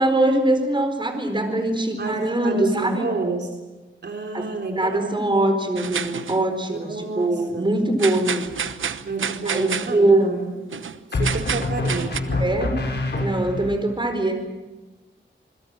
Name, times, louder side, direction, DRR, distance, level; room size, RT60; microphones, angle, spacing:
voice 1, 0.0-3.1 4.3-4.5 4.8-8.4 9.5-10.3 12.4-12.7 13.2-14.6, right 1 dB, 25° right, 6 dB, 4.5 m, -22 dB
voice 2, 2.0-3.5 4.0-5.2 6.7-7.7 9.0-10.5 11.1-12.5 13.1-13.3 13.6-13.7, right 3 dB, 60° right, 3 dB, 3.3 m, -30 dB
sound 1, 5.8-6.4 8.0-9.9 10.7-11.0 11.2-12.2, right 7 dB, 85° right, 1.1 m, -29 dB
sound 2, 8.5-9.0 11.1-13.8, left 2 dB, 60° left, 6.5 m, -26 dB
28.0 x 21.0 x 7.5 m, 1.1 s
wide cardioid pair, 110°, 20 cm